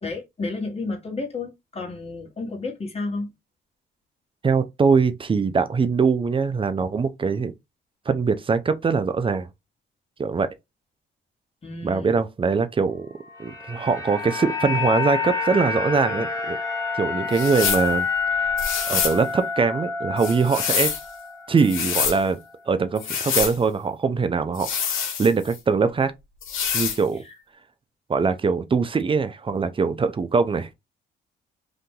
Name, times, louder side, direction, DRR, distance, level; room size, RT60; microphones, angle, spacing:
voice 1, 0.0-3.3 11.6-12.2, left 3 dB, 30° left, 1.4 m, -31 dB
voice 2, 4.4-7.5 8.1-9.5 10.2-10.5 11.8-13.1 13.4-16.6 16.9-18.1 18.4-18.6 18.9-20.9 21.5-22.4 22.7-24.7 25.2-26.1 26.7-27.2 28.1-30.7, right 5 dB, 25° right, 0.5 m, -22 dB
sound 1, 13.2-21.5 21.7-21.9, left 5 dB, 15° left, 1.2 m, -28 dB
sound 2, 17.3-17.9 18.6-19.2 20.2-21.0 21.6-22.2 23.0-23.6 24.5-25.6 26.4-27.0, left 7 dB, 85° left, 1.3 m, -26 dB
2.8 x 2.6 x 3.6 m
cardioid pair, 90°, 20 cm